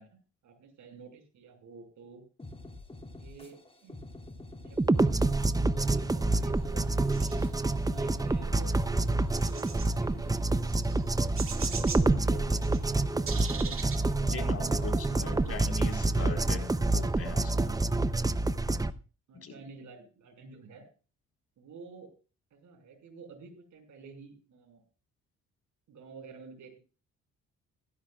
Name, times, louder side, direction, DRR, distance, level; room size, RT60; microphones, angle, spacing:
voice 1, 0.0-2.2 3.2-4.0 4.6-5.3 5.9-7.0 7.8-10.9 11.5-15.6 18.6-18.8 19.3-20.9 21.6-22.1 22.5-24.8 25.9-26.8, right 5 dB, 75° right, 4 dB, 6.0 m, -51 dB
sound 1, 2.4-10.4, left 2 dB, 20° left, 2.8 m, -47 dB
sound 2, 4.8-18.9, right 2 dB, 10° right, 0.7 m, -27 dB
sound 3, 6.3-18.1, right 6 dB, 45° right, 2.2 m, -46 dB
voice 2, 14.2-17.7 19.4-19.5, left 4 dB, 50° left, 5 dB, 4.7 m, -41 dB
17.5 x 15.5 x 2.5 m, 0.35 s
cardioid pair, 90°, 30 cm